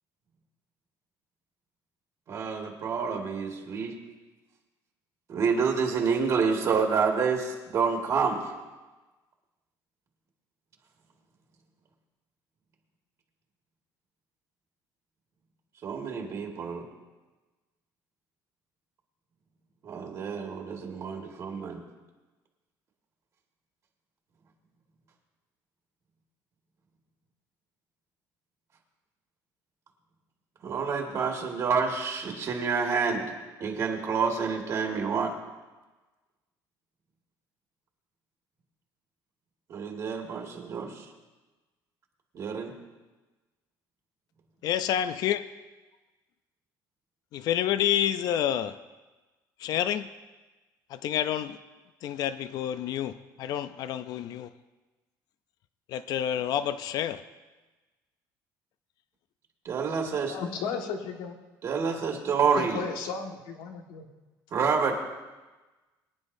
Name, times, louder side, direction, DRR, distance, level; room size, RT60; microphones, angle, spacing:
voice 1, 2.3-4.0 5.3-8.4 15.8-16.9 19.8-21.8 30.6-33.2 33.6-35.3 39.7-41.1 42.3-42.7 59.7-60.4 61.6-62.8 64.5-64.9, right 5 dB, 45° right, 1.7 m, -28 dB
voice 2, 44.6-45.4 47.3-48.8 49.6-50.1 50.9-51.6 52.0-54.5 55.9-57.2, left 10 dB, 60° left, 0.5 m, -28 dB
voice 3, 60.3-61.4 62.6-64.1, left 5 dB, 90° left, 1.7 m, -34 dB
23.5 x 10.0 x 2.7 m
cardioid pair, 145°, 8 cm